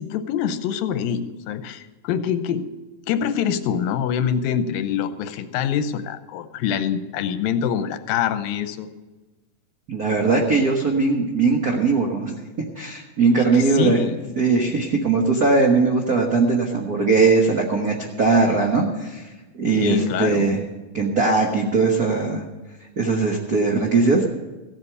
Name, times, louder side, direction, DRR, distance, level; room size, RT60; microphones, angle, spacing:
voice 1, 0.0-2.7 3.1-8.9 13.4-14.2 19.8-20.5, left 8 dB, 85° left, 10 dB, 2.6 m, -25 dB
voice 2, 9.9-12.4 12.8-14.0 14.4-19.2 19.5-20.6 20.9-22.4 23.0-24.2, right 4 dB, 70° right, 0 dB, 0.8 m, -20 dB
15.5 x 8.2 x 6.8 m, 1.1 s
omnidirectional pair, 4.0 m